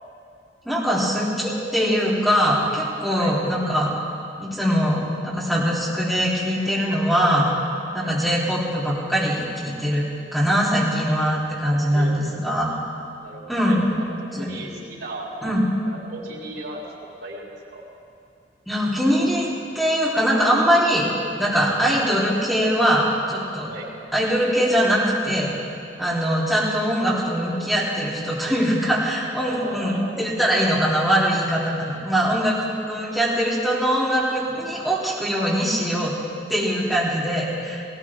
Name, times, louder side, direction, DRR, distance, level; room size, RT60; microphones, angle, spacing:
voice 1, 0.7-3.9 4.4-7.5 7.9-12.7 13.5-13.9 14.3-14.5 15.4-15.6 18.7-19.5 19.8-21.1 21.4-23.7 24.1-25.5 26.0-32.6 32.9-36.1 36.5-37.9, equal, ahead, -8 dB, 3.4 m, -22 dB
voice 2, 11.9-12.3 13.2-13.8 14.4-15.3 15.9-16.8 17.2-17.5 17.7-17.8 21.8-22.0 23.7-23.9 29.3-30.2 31.7-32.0, right 2 dB, 85° right, -5 dB, 3.9 m, -36 dB
18.5 x 18.0 x 3.7 m, 2.5 s
head